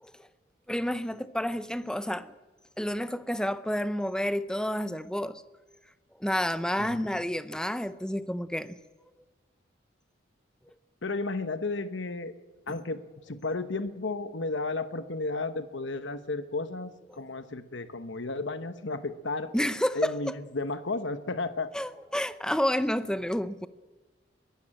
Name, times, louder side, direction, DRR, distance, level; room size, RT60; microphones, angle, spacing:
voice 1, 0.7-2.3 2.8-5.4 6.2-8.8 12.7-12.8 19.5-20.1 21.7-23.7, equal, 5° left, 13 dB, 0.6 m, -30 dB
voice 2, 6.8-7.1 11.0-12.3 12.7-13.0 13.3-19.5 19.9-21.7, left 3 dB, 70° left, 11 dB, 1.1 m, -33 dB
22.0 x 15.5 x 9.0 m, 1.3 s
head